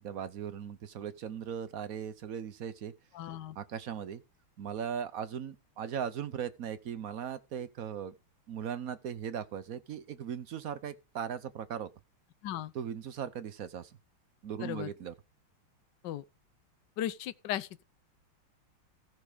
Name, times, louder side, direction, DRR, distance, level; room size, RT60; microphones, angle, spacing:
voice 1, 0.0-2.9 3.5-4.2 4.6-8.1 8.5-11.9 12.7-14.0 14.4-15.1, right 8 dB, 60° right, 0.9 m, -38 dB
voice 2, 3.1-3.6 12.4-12.7 14.6-14.9 16.0-16.2 17.0-17.8, left 12 dB, 65° left, 1.3 m, -36 dB
16.0 x 6.1 x 5.0 m
omnidirectional pair, 2.4 m